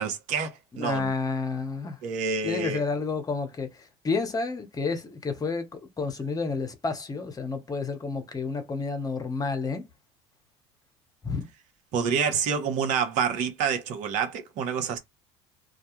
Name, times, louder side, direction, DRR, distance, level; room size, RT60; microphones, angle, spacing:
voice 1, 0.0-1.1 2.0-2.8 11.9-15.0, right 6 dB, 60° right, 1.0 m, -28 dB
voice 2, 0.8-2.0 2.4-5.6 6.0-9.8 11.2-11.5, left 4 dB, 25° left, 0.9 m, -30 dB
2.4 x 2.2 x 3.0 m
hypercardioid pair, 75°, 14 cm